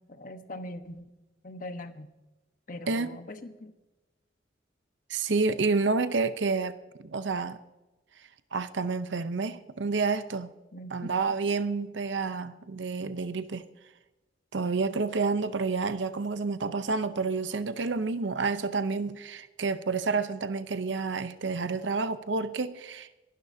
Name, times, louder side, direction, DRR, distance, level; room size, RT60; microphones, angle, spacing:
voice 1, 0.1-1.1 1.4-2.1 2.7-3.7 10.7-11.1, left 1 dB, 45° left, 1.1 m, -41 dB
voice 2, 5.1-6.8 7.0-7.6 8.5-10.5 10.9-13.6 14.5-23.2, right 4 dB, 75° right, 0.7 m, -29 dB
26.5 x 11.5 x 2.7 m
head